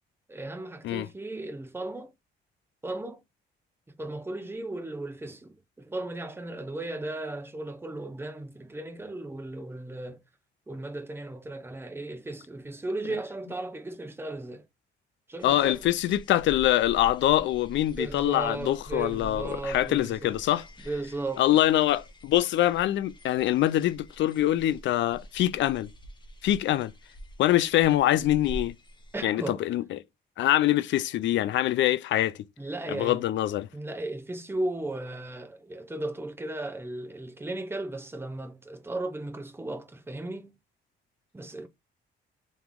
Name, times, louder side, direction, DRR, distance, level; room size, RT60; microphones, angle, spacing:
voice 1, 0.3-2.1 2.8-3.2 4.0-10.2 10.7-14.6 15.3-15.9 18.0-20.4 20.8-21.4 29.1-29.6 32.6-33.3 33.7-40.5 41.3-41.7, right 2 dB, 10° right, 0.7 m, -36 dB
voice 2, 15.4-20.6 21.4-25.9 26.4-26.9 27.4-28.7 29.2-30.0 30.4-32.4 32.9-33.7, left 13 dB, 70° left, 0.4 m, -24 dB
sound 1, 15.4-29.2, equal, 25° left, 1.0 m, -46 dB
3.5 x 3.1 x 3.4 m
cardioid pair, 90°, 20 cm